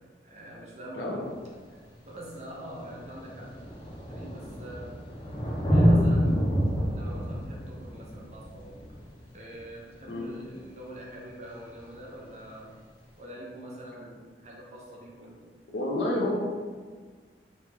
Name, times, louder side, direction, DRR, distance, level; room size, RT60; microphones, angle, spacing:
voice 1, 0.2-1.2 1.7-1.8 2.1-3.6 4.1-5.0 5.7-6.4 6.9-8.8 9.3-12.7 13.2-15.5, right 1 dB, 40° right, -4 dB, 0.6 m, -44 dB
voice 2, 0.9-1.3 10.1-10.3 15.7-16.4, left 1 dB, 70° left, -1 dB, 0.5 m, -29 dB
Thunder, 1.3-1.4 2.4-2.5 2.7-10.0 11.7-11.8, equal, 25° left, 0.6 m, -27 dB
3.2 x 2.1 x 3.2 m, 1.6 s
head